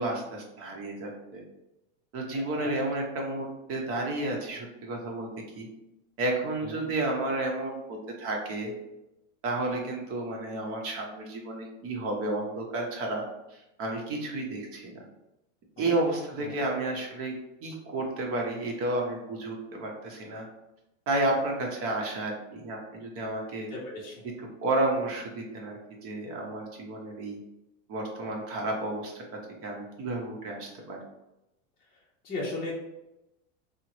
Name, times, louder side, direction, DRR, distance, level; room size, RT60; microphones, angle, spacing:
voice 1, 0.0-1.4 2.1-5.3 5.6-5.7 6.2-8.7 9.4-13.3 13.5-15.0 15.8-17.3 17.6-20.5 21.1-23.7 24.4-27.4 27.9-29.2 29.6-31.0, right 2 dB, 35° right, 0 dB, 0.9 m, -31 dB
voice 2, 23.7-24.2 32.2-32.7, left 2 dB, 25° left, -6 dB, 0.7 m, -36 dB
3.5 x 2.1 x 3.0 m, 0.92 s
supercardioid pair, 130°, 38 cm